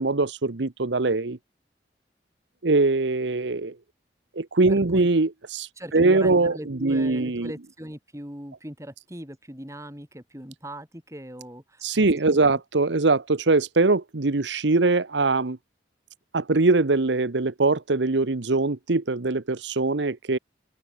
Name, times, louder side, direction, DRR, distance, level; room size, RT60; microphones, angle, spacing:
voice 1, 0.0-1.4 2.6-3.8 4.4-7.5 11.8-15.6 16.3-20.4, right 3 dB, 85° right, 1.0 m, -22 dB
voice 2, 4.7-5.1 5.8-12.0 12.3-12.4, equal, 15° right, 4.7 m, -39 dB
open air
head